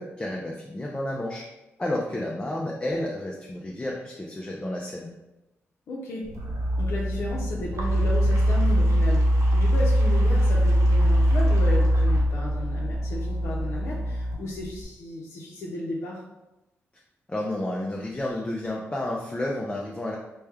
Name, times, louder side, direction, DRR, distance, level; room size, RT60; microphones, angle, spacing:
voice 1, 0.0-1.5 1.8-5.1 17.3-20.2, left 1 dB, 20° left, -2 dB, 0.5 m, -31 dB
voice 2, 5.9-6.3 6.8-9.2 9.5-16.2, left 1 dB, 75° left, -4 dB, 0.6 m, -34 dB
sound 1, 6.2-14.8, equal, 85° right, 0.7 m, -22 dB
3.1 x 2.2 x 3.5 m, 0.98 s
cardioid pair, 80°, 5 cm